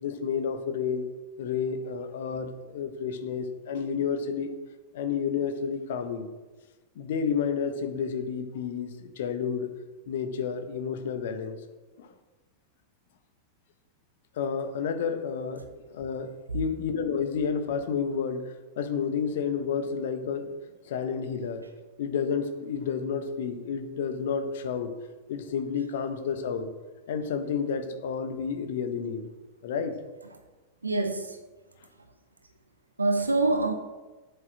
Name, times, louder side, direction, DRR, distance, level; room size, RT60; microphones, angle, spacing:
voice 1, 0.0-1.1 1.4-4.5 4.9-6.3 6.9-9.7 10.1-11.6 12.0-12.1 14.3-20.5 20.8-21.6 22.0-25.0 25.3-26.7 27.1-29.3 29.6-30.0, left 6 dB, 55° left, 7 dB, 1.3 m, -30 dB
voice 2, 30.8-31.4 33.0-33.7, right 3 dB, 80° right, 7 dB, 1.3 m, -25 dB
8.5 x 7.2 x 7.5 m, 1.2 s
figure-of-eight pair, 90°, 0 cm